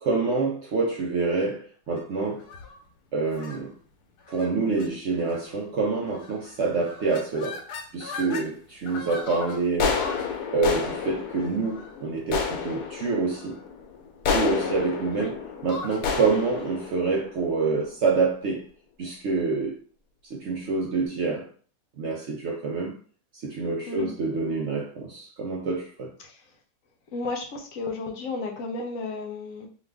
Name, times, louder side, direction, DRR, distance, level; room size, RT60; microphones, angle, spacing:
voice 1, 0.0-2.5 3.1-3.7 4.3-7.6 7.9-10.0 10.5-13.6 14.3-18.6 19.0-19.8 20.3-21.5 22.0-23.0 23.4-26.1, right 4 dB, 65° right, 0.7 m, -27 dB
sound 1, 2.4-2.8 3.3-3.6 4.3-4.5 4.8-4.9 5.2-5.6 6.2-6.5 6.8-8.5 8.9-18.0, left 5 dB, 90° left, 1.2 m, -32 dB
voice 2, 27.1-29.7, left 3 dB, 65° left, 1.0 m, -33 dB
2.8 x 2.4 x 3.3 m
omnidirectional pair, 1.6 m